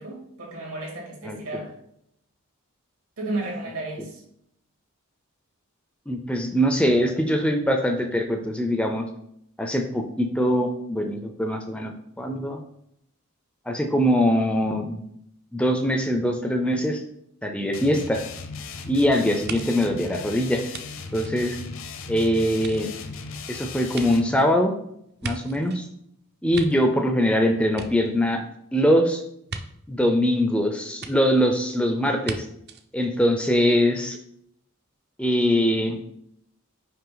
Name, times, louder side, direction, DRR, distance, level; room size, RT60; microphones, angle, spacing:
voice 1, 0.0-1.8 3.2-4.2, right 2 dB, 75° right, -1 dB, 2.3 m, -33 dB
voice 2, 1.2-1.6 6.1-9.1 9.6-12.6 13.7-15.0 15.5-17.0 17.4-18.2 18.9-20.6 21.1-21.6 22.1-22.9 23.5-24.7 25.2-25.9 26.4-28.4 28.7-29.2 29.9-32.5 32.9-34.2 35.2-36.0, equal, 5° left, 5 dB, 0.4 m, -22 dB
sound 1, 17.7-24.3, left 4 dB, 60° left, 0.6 m, -37 dB
sound 2, 19.5-22.1 22.5-25.9 26.3-27.3 27.6-28.6 29.5-29.6 31.0-31.1 32.2-32.4 32.7-32.8, right 4 dB, 45° right, 0.5 m, -38 dB
5.6 x 4.7 x 3.9 m, 0.74 s
head